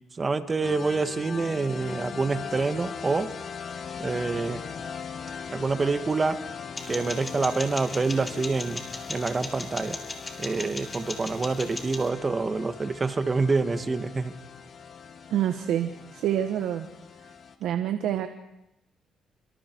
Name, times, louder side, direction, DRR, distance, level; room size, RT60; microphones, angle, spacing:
voice 1, 0.1-3.3 4.0-4.6 5.5-6.4 6.9-8.8 9.1-10.0 10.4-14.3, right 3 dB, 30° right, 9 dB, 1.8 m, -27 dB
sound 1, 0.6-17.5, left 6 dB, 50° left, 2.5 m, -40 dB
sound 2, 6.8-12.1, left 2 dB, 25° left, 5.1 m, -38 dB
voice 2, 15.3-16.9 17.6-18.3, right 11 dB, 85° right, 7 dB, 1.5 m, -27 dB
28.5 x 26.5 x 4.7 m, 0.88 s
cardioid pair, 90°, 0 cm